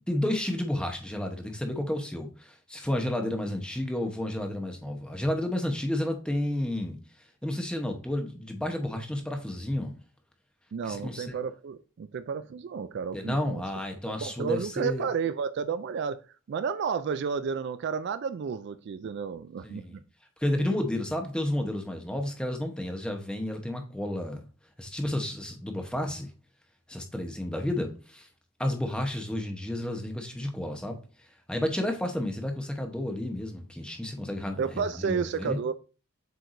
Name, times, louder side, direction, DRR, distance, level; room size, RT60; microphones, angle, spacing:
voice 1, 0.1-7.0 7.4-9.9 10.8-11.4 13.1-15.1 19.6-20.0 20.4-24.4 24.8-26.3 26.9-28.3 28.6-31.0 31.5-35.6, left 1 dB, 5° left, 0.9 m, -31 dB
voice 2, 10.7-13.6 14.2-16.2 16.5-20.0 34.6-35.7, right 6 dB, 50° right, 0.3 m, -31 dB
7.8 x 4.6 x 2.6 m
head